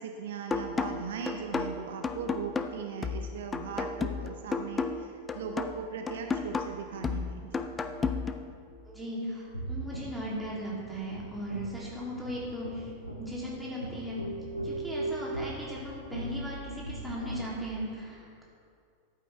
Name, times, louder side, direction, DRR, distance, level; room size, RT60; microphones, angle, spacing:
voice 1, 0.0-7.7, right 6 dB, 60° right, 4 dB, 0.6 m, -39 dB
sound 1, 0.5-8.5, left 4 dB, 15° left, 0.5 m, -33 dB
voice 2, 8.9-12.9 13.2-14.3 14.6-18.4, equal, 5° right, -6 dB, 2.8 m, -37 dB
sound 2, 9.4-17.5, right 1 dB, 85° left, 0.9 m, -39 dB
13.5 x 8.4 x 3.4 m, 2.3 s
figure-of-eight pair, 90°, 0 cm